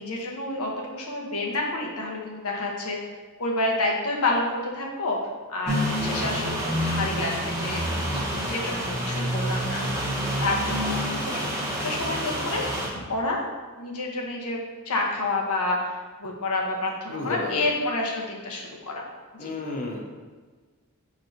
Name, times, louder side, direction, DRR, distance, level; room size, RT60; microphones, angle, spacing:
voice 1, 0.0-3.1 3.4-5.2 5.5-9.8 10.4-11.5 11.8-12.7 12.9-13.4 13.7-14.6 14.9-15.9 16.2-19.0 19.4-19.5, left 2 dB, 90° left, -1 dB, 0.8 m, -29 dB
sound 1, 5.7-12.9, equal, 15° right, 0.9 m, -28 dB
voice 2, 17.1-17.7 19.4-20.0, left 3 dB, 35° left, -1 dB, 0.6 m, -32 dB
4.5 x 4.4 x 2.6 m, 1.4 s
head